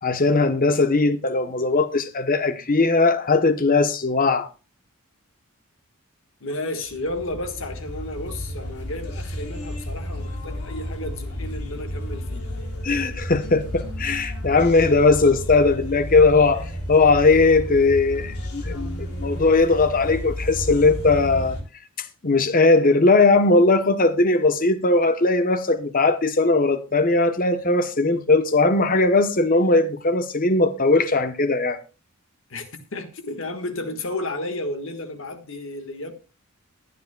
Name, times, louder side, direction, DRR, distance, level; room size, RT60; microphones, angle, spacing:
voice 1, 0.0-4.5 12.8-21.6 22.0-31.8, left 3 dB, 40° left, 0.9 m, -19 dB
voice 2, 6.4-12.5 32.5-32.7 32.9-36.1, left 2 dB, 60° left, 1.5 m, -32 dB
sound 1, 6.9-21.6, left 1 dB, 85° left, 3.5 m, -32 dB
21.5 x 9.5 x 2.2 m
head